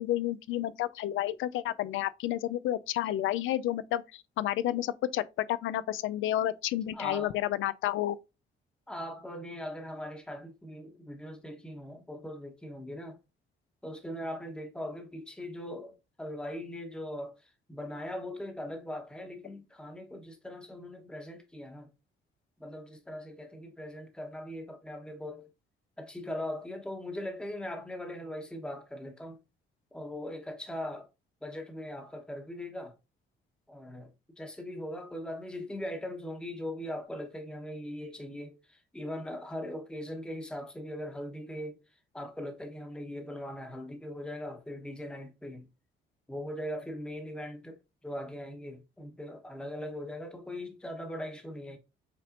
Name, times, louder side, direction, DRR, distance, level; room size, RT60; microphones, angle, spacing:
voice 1, 0.0-8.2, left 13 dB, 80° left, 0.5 m, -31 dB
voice 2, 6.9-7.3 8.9-13.2 13.8-21.9 22.6-25.5 26.0-29.4 29.9-31.1 31.4-32.9 33.7-41.8 42.1-45.7 46.3-47.8 48.0-51.8, left 1 dB, 5° left, 1.1 m, -40 dB
5.7 x 3.4 x 2.5 m
cardioid pair, 90°, 20 cm